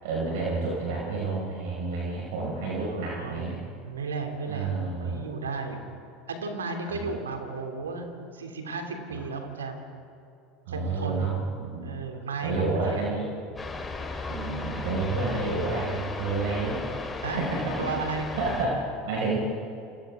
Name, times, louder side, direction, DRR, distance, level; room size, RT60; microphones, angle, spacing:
voice 1, 0.0-3.6 4.5-5.2 6.9-7.1 9.1-9.2 10.7-11.9 12.4-13.3 14.3-16.8 17.2-17.9 18.3-19.4, right 3 dB, 65° right, -4 dB, 5.9 m, -30 dB
voice 2, 2.8-5.8 6.3-8.1 8.3-9.8 10.7-11.3 11.8-13.2 17.2-18.3, right 4 dB, 80° right, 4 dB, 3.1 m, -34 dB
sound 1, 13.6-18.7, left 3 dB, 15° left, 3.8 m, -35 dB
29.0 x 28.5 x 3.8 m, 2.6 s
figure-of-eight pair, 75°, 0 cm